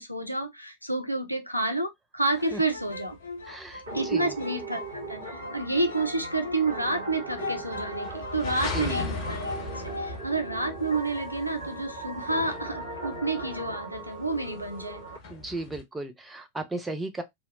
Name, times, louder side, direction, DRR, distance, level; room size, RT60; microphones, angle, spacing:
voice 1, 0.0-3.2 3.9-9.5 10.0-15.0, right 2 dB, 90° right, 0.4 m, -29 dB
sound 1, 2.3-7.1 7.4-10.2, left 3 dB, 75° left, 0.5 m, -38 dB
sound 2, 2.4-15.8, left 3 dB, 45° left, 0.9 m, -40 dB
voice 2, 3.4-4.4 8.7-9.1 15.3-17.2, right 2 dB, 10° right, 0.5 m, -35 dB
sound 3, 3.9-15.2, right 3 dB, 70° right, 1.2 m, -39 dB
2.7 x 2.0 x 2.5 m
figure-of-eight pair, 90°, 0 cm